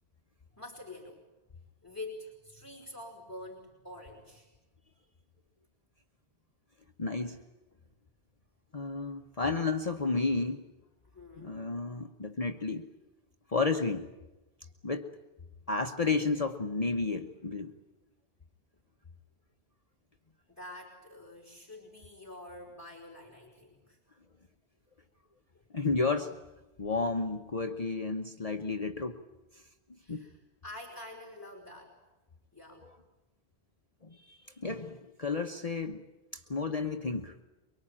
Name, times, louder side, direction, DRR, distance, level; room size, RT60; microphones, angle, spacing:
voice 1, 0.6-1.2 1.8-4.5 7.7-7.8 11.0-11.6 20.6-24.0 25.5-25.7 30.0-32.0 32.5-32.9, left 2 dB, 15° left, -5 dB, 4.8 m, -47 dB
voice 2, 7.0-7.4 8.7-10.7 11.4-12.9 13.5-14.1 14.8-15.1 15.7-17.7 25.7-26.4 26.8-29.2 29.5-29.6 30.1-30.3 32.8-32.9 34.1-36.0 36.3-37.3, left 3 dB, 35° left, 4 dB, 1.1 m, -32 dB
24.0 x 23.5 x 8.8 m, 1.1 s
omnidirectional pair, 1.1 m